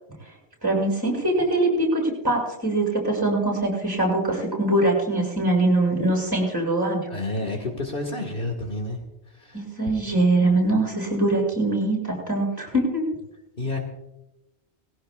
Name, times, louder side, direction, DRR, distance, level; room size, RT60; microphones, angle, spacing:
voice 1, 0.6-7.0 9.5-13.1, right 2 dB, 20° right, -1 dB, 6.9 m, -22 dB
voice 2, 7.1-9.0 9.4-9.6 13.6-13.8, left 2 dB, 50° left, 2 dB, 2.1 m, -29 dB
20.0 x 17.0 x 2.4 m, 0.90 s
omnidirectional pair, 1.2 m